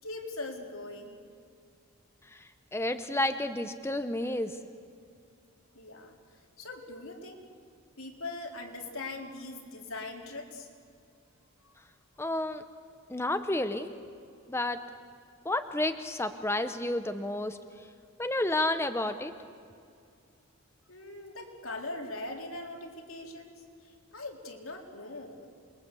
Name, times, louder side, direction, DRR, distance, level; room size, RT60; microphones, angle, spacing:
voice 1, 0.0-1.2 5.7-7.4 8.0-10.7 11.6-11.7 20.9-25.5, left 2 dB, 75° left, 2 dB, 3.7 m, -41 dB
voice 2, 2.3-4.6 12.2-12.6 13.1-13.9 14.5-14.8 15.4-17.6 18.2-19.3, left 1 dB, 10° left, 9 dB, 0.8 m, -31 dB
28.0 x 22.5 x 8.3 m, 2.4 s
head